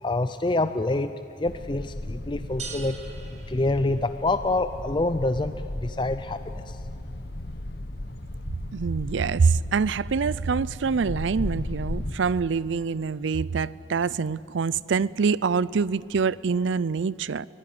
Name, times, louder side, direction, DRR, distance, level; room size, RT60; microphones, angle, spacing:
voice 1, 0.0-1.1 1.4-3.0 3.5-5.5 5.8-6.8, left 2 dB, 25° left, 0.5 m, -26 dB
sound 1, 1.4-12.1, left 1 dB, 55° left, 1.2 m, -36 dB
sound 2, 2.6-4.4, right 4 dB, 35° right, 2.5 m, -42 dB
voice 2, 8.7-17.5, right 5 dB, 75° right, 0.5 m, -25 dB
24.0 x 16.5 x 9.5 m
head